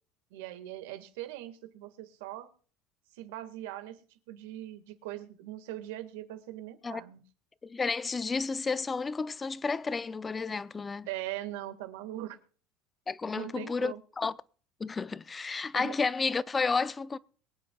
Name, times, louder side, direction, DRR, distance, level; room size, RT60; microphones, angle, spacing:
voice 1, 0.3-2.5 3.1-4.0 4.3-7.2 11.1-12.4 13.3-14.0 15.7-16.0, right 14 dB, 85° right, 1.8 m, -41 dB
voice 2, 7.6-11.1 13.1-14.3 14.8-17.2, left 4 dB, 15° left, 0.5 m, -31 dB
23.5 x 9.5 x 2.4 m
cardioid pair, 155°, 0 cm